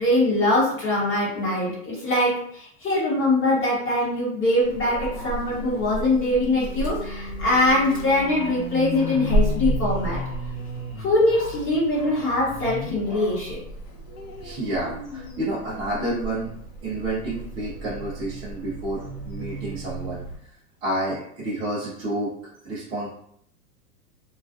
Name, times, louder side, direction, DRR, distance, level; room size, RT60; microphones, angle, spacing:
voice 1, 0.0-10.2 11.0-13.6, left 1 dB, 25° left, -7 dB, 0.9 m, -22 dB
Weird animal zombie creature weird weak moaning, 3.5-13.1 13.5-16.6 17.1-17.2 17.5-17.6, left 4 dB, 40° left, 0.5 m, -37 dB
Dog, 4.6-20.4, right 2 dB, 80° left, 0.9 m, -33 dB
voice 2, 14.4-16.5 16.8-20.2 20.8-22.3 22.6-23.1, right 1 dB, 10° right, -11 dB, 0.3 m, -29 dB
2.4 x 2.1 x 2.4 m, 0.67 s
hypercardioid pair, 120°, 46 cm